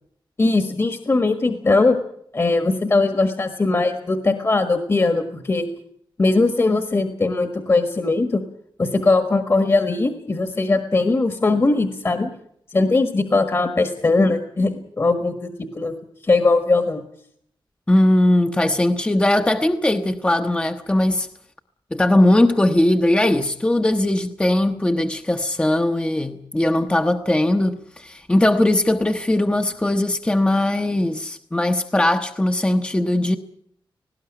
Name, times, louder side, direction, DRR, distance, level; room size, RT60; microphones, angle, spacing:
voice 1, 0.4-2.0 2.3-5.7 6.2-8.4 8.8-12.3 12.7-15.9 16.2-17.0, left 3 dB, 30° left, 8 dB, 1.5 m, -20 dB
voice 2, 17.9-21.3 21.9-33.4, left 1 dB, 10° left, 6 dB, 0.9 m, -19 dB
18.5 x 17.0 x 10.0 m, 0.69 s
wide cardioid pair, 155°, 9 cm